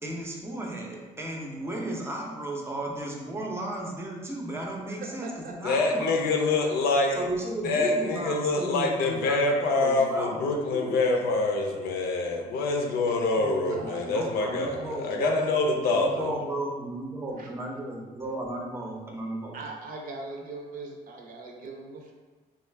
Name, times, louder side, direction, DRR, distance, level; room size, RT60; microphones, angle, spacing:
voice 1, 0.0-6.3 7.1-11.0 13.3-15.4 15.8-19.6, right 1 dB, 15° right, -1 dB, 0.7 m, -35 dB
voice 2, 5.0-5.8 13.7-14.3 14.7-15.1 17.4-17.5 19.5-22.1, right 3 dB, 55° right, 1 dB, 0.6 m, -41 dB
voice 3, 5.6-7.2 7.6-16.3, left 3 dB, 70° left, 1 dB, 0.6 m, -25 dB
3.7 x 2.4 x 3.3 m, 1.3 s
cardioid pair, 110°, 17 cm